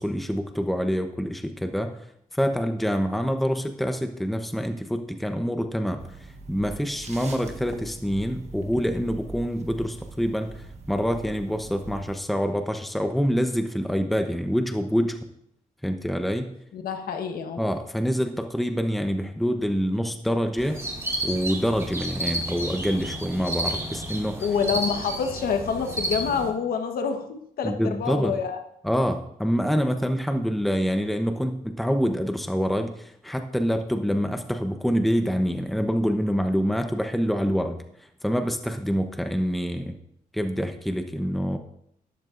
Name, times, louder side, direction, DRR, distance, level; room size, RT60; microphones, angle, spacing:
voice 1, 0.0-1.9 2.3-10.6 10.9-15.2 15.8-16.5 17.6-20.8 21.2-24.4 27.6-28.4 28.8-40.0 40.3-41.6, equal, ahead, 6 dB, 0.8 m, -26 dB
sound 1, 6.0-12.2, right 3 dB, 50° right, 1.4 m, -42 dB
voice 2, 16.7-17.6 24.4-27.3 27.6-28.6, left 6 dB, 85° left, 5 dB, 1.2 m, -27 dB
sound 2, 20.6-26.5, right 1 dB, 20° right, 2.2 m, -31 dB
12.0 x 11.0 x 2.6 m, 0.73 s
cardioid pair, 95°, 15 cm